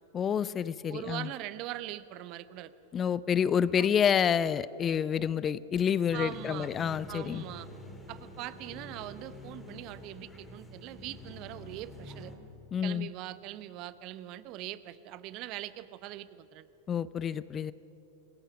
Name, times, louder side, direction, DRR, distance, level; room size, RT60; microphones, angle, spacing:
voice 1, 0.1-1.3 2.9-7.4 12.7-13.1 16.9-17.7, left 8 dB, 25° left, 19 dB, 0.5 m, -28 dB
voice 2, 0.9-2.7 3.8-3.9 6.1-6.7 7.1-7.7 8.1-12.3 12.8-16.7, right 15 dB, 40° right, 15 dB, 0.8 m, -41 dB
sound 1, 6.1-12.4, left 1 dB, 10° left, 2.7 m, -47 dB
26.0 x 21.5 x 5.9 m, 2.9 s
figure-of-eight pair, 90°, 0 cm